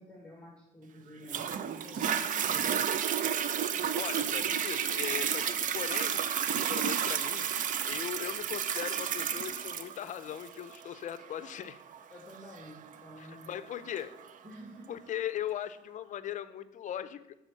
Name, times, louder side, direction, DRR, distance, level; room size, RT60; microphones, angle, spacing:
voice 1, 0.0-3.2 12.1-13.5 14.4-14.9, equal, 5° left, -1 dB, 1.4 m, -50 dB
Toilet flush, 1.3-14.3 14.9-15.0, right 8 dB, 50° right, 0.5 m, -32 dB
voice 2, 4.0-6.3 6.7-7.5 7.8-11.8 13.2-14.1 14.9-17.4, left 10 dB, 45° left, 14 dB, 0.5 m, -39 dB
6.5 x 4.6 x 6.2 m, 0.94 s
cardioid pair, 110°, 17 cm